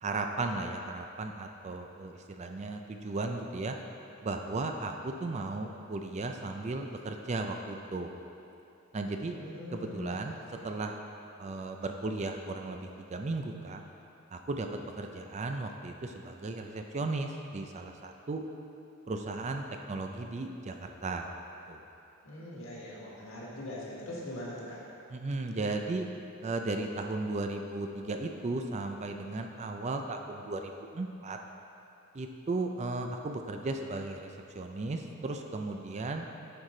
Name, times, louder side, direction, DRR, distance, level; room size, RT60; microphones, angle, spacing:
voice 1, 0.0-3.8 4.2-8.1 8.9-9.4 9.7-10.4 10.6-11.0 11.4-13.8 14.3-14.7 15.0-18.4 19.1-21.3 21.7-21.8 25.1-26.1 26.4-31.4 32.1-34.3 34.5-36.3, right 2 dB, 30° right, 4 dB, 0.4 m, -35 dB
voice 2, 9.2-10.2 10.4-10.7 22.2-24.8, left 1 dB, 65° left, -5 dB, 1.6 m, -42 dB
9.7 x 4.8 x 3.8 m, 2.7 s
head